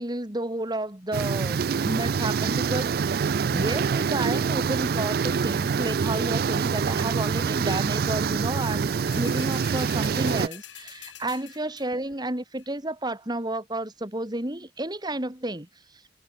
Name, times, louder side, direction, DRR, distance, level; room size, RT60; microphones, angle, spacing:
voice 1, 0.0-15.7, right 1 dB, 25° right, 2.4 m, -31 dB
sound 1, 1.1-10.5, right 6 dB, 55° right, 0.4 m, -25 dB
sound 2, 9.1-12.1 12.6-12.7, left 12 dB, 85° left, 1.6 m, -45 dB
head